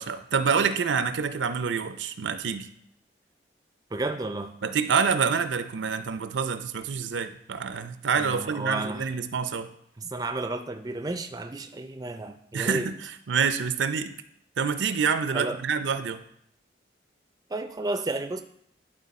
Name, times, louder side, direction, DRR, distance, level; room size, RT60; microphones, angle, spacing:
voice 1, 0.0-2.7 4.6-9.7 12.5-13.0 13.3-14.1 14.6-16.2, right 6 dB, 90° right, 11 dB, 0.5 m, -27 dB
voice 2, 3.9-4.5 8.2-9.1 10.0-12.9 15.3-15.6 17.5-18.4, right 2 dB, 20° right, 8 dB, 0.4 m, -32 dB
11.0 x 4.1 x 4.1 m, 0.70 s
head